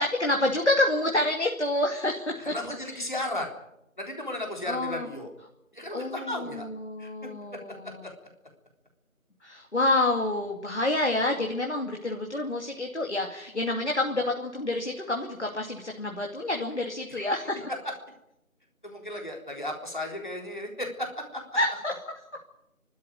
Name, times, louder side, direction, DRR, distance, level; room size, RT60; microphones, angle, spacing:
voice 1, 0.0-2.5 2.9-3.0 4.7-5.1 5.9-6.3 6.8-7.9 9.4-17.7 21.6-21.9, left 2 dB, 55° left, 1 dB, 2.6 m, -28 dB
voice 2, 2.4-3.5 4.0-5.3 5.7-6.7 7.0-7.3 8.0-8.1 17.1-17.4 17.7-17.9 18.8-21.4, left 1 dB, 35° left, 2 dB, 3.8 m, -35 dB
29.5 x 13.0 x 9.4 m, 0.85 s
figure-of-eight pair, 180°, 41 cm